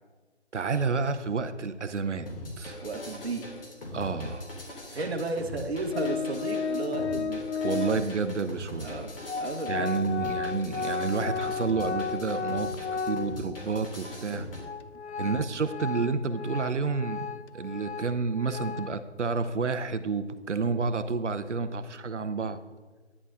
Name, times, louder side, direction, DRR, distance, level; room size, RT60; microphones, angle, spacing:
voice 1, 0.5-2.3 2.6-2.8 3.9-4.5 7.6-8.9 9.7-14.5 15.2-17.3 17.5-22.6, right 4 dB, 85° right, 11 dB, 0.7 m, -30 dB
sound 1, 2.3-14.6, left 1 dB, 55° left, 2.2 m, -41 dB
voice 2, 2.8-3.4 4.9-7.4 7.9-8.0 8.8-10.4 15.2-15.4, right 3 dB, 65° right, 4 dB, 1.1 m, -34 dB
Organ, 5.9-8.2 8.9-9.0 9.2-13.6 14.0-14.1 14.6-19.0, left 5 dB, 70° left, 0.5 m, -33 dB
10.0 x 9.8 x 2.5 m, 1.3 s
figure-of-eight pair, 155°, 35 cm